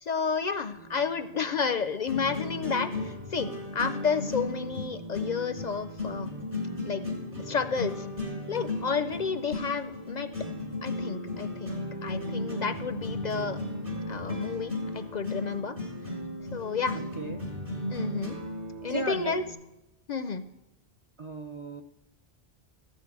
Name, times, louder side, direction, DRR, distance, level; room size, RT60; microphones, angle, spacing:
voice 1, 0.0-3.5 3.7-6.3 6.8-7.0 7.5-8.1 8.5-10.3 10.8-13.6 14.1-15.8 16.5-17.0 17.9-18.4 18.8-19.4 20.1-20.4, left 5 dB, 55° left, 11 dB, 0.6 m, -31 dB
sound 1, 0.7-19.5, left 1 dB, 60° right, 3.5 m, -35 dB
voice 2, 18.8-19.4 21.2-21.8, right 3 dB, 40° right, 7 dB, 0.5 m, -35 dB
14.5 x 6.5 x 8.4 m, 0.91 s
omnidirectional pair, 1.1 m